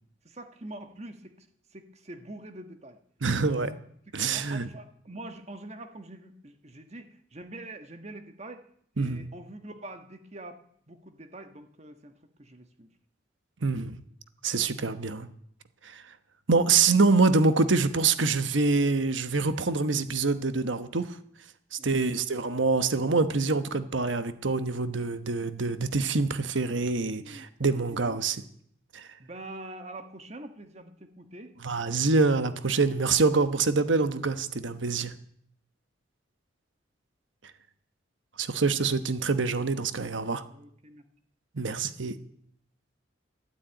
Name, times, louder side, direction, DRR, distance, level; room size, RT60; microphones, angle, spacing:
voice 1, 0.2-1.5 1.7-3.0 4.3-8.6 9.0-10.6 10.9-12.9 14.8-14.9 21.8-22.2 24.7-24.9 27.1-28.2 29.2-31.5 40.5-41.1, right 1 dB, 35° right, 7 dB, 1.3 m, -45 dB
voice 2, 3.2-3.8 4.1-4.7 9.0-9.2 13.6-14.0 14.4-15.3 15.8-16.0 16.5-21.1 21.7-28.4 28.9-29.1 31.6-35.1 38.4-40.4 41.5-42.2, right 4 dB, 80° right, 11 dB, 1.1 m, -25 dB
13.0 x 12.0 x 9.0 m, 0.66 s
head